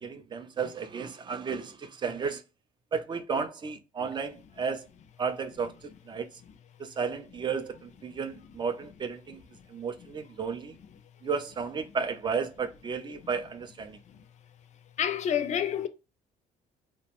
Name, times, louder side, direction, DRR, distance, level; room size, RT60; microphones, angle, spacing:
voice 1, 0.0-2.4 2.9-4.9 5.2-6.3 6.8-9.4 9.7-10.8 11.2-14.0, right 5 dB, 25° right, 0.4 m, -33 dB
voice 2, 15.0-15.9, left 9 dB, 45° left, 0.4 m, -28 dB
2.5 x 2.1 x 2.8 m
cardioid pair, 110°, 17 cm